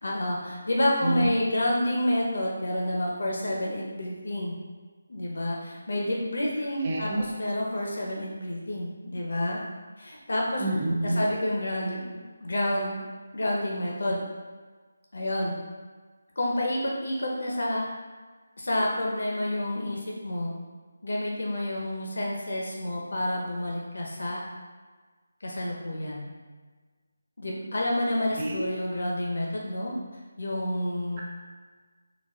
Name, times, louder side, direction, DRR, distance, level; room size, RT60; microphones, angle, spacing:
voice 1, 0.0-4.6 5.1-9.6 10.0-10.6 11.0-12.0 12.4-13.0 13.3-14.2 15.1-15.5 16.4-17.8 18.6-20.5 21.0-24.4 25.4-26.3 27.4-29.9 30.4-31.2, left 1 dB, 55° left, -2 dB, 0.8 m, -29 dB
voice 2, 6.8-7.2 10.6-11.3 28.4-28.7, right 1 dB, 15° right, -5 dB, 0.5 m, -27 dB
4.0 x 2.5 x 3.7 m, 1.4 s
figure-of-eight pair, 180°, 0 cm